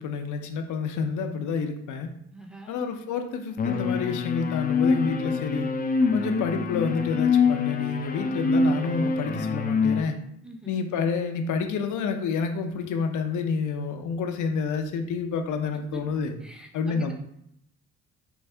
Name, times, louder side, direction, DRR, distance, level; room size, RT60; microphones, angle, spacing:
voice 1, 0.0-2.1 2.7-5.7 6.1-10.2 10.7-16.3 16.7-17.1, left 5 dB, 80° left, 6 dB, 0.6 m, -29 dB
voice 2, 2.3-2.8 10.4-10.8 15.7-16.0 16.4-17.1, right 1 dB, 5° right, 1 dB, 0.7 m, -44 dB
sound 1, 3.6-10.0, left 4 dB, 30° left, 0.4 m, -25 dB
4.6 x 2.6 x 3.3 m, 0.74 s
cardioid pair, 90°, 30 cm